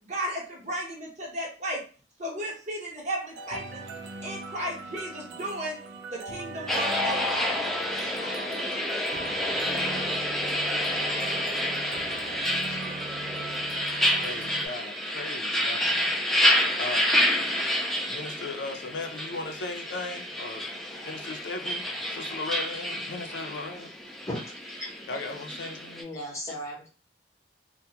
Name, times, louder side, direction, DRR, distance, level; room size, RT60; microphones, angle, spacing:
voice 1, 0.1-1.8 2.2-3.8 4.2-9.0, right 1 dB, 40° right, 0.9 m, -35 dB
sound 1, 3.4-14.7, right 4 dB, 85° right, 0.4 m, -40 dB
sound 2, 6.7-26.0, left 1 dB, ahead, 0.4 m, -29 dB
voice 2, 14.1-16.0 16.7-17.1 18.1-20.7 21.0-24.1 25.1-26.1, left 3 dB, 85° left, 0.5 m, -37 dB
voice 3, 25.9-26.9, equal, 15° left, 0.8 m, -35 dB
2.2 x 2.1 x 2.7 m
head